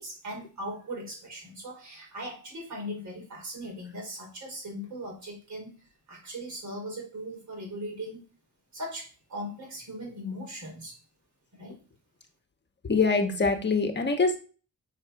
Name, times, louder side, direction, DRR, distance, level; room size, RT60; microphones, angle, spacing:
voice 1, 0.0-5.7 6.1-8.2 8.7-10.9 11.5-11.8, equal, 60° right, -1 dB, 5.0 m, -39 dB
voice 2, 12.8-14.4, left 4 dB, 35° left, 5 dB, 1.1 m, -24 dB
6.7 x 6.6 x 4.7 m, 0.37 s
wide cardioid pair, 125°, 32 cm